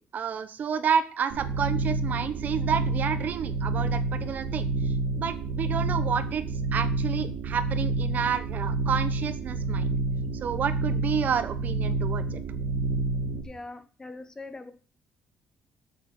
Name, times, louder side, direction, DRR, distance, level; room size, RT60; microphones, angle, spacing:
voice 1, 0.0-6.4 6.7-9.9 10.3-12.4, right 7 dB, 45° right, 12 dB, 1.0 m, -30 dB
sound 1, 1.3-13.4, right 3 dB, 85° right, 2.1 m, -29 dB
voice 2, 13.3-14.7, left 2 dB, 15° left, 10 dB, 1.0 m, -42 dB
8.1 x 6.6 x 7.8 m, 0.40 s
cardioid pair, 140°, 4 cm